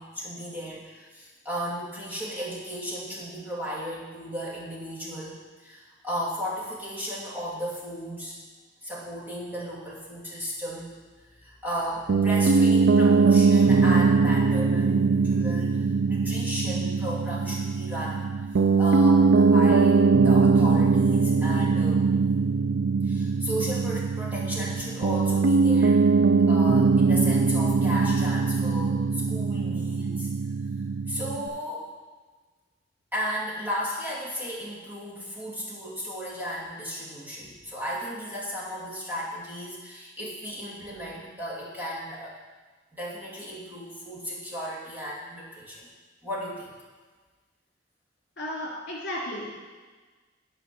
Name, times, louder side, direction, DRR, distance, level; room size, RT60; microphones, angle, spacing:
voice 1, 0.0-8.4 8.8-10.9 11.4-15.8 16.1-18.2 18.8-22.0 23.0-26.1 26.5-30.3 31.1-31.9 33.1-42.4 43.0-45.9 46.2-46.7, equal, 10° right, -7 dB, 2.3 m, -35 dB
Piano, 12.1-31.5, right 4 dB, 70° right, 0.4 m, -21 dB
voice 2, 48.4-49.5, left 1 dB, 60° left, -4 dB, 3.2 m, -34 dB
8.9 x 5.0 x 6.9 m, 1.4 s
head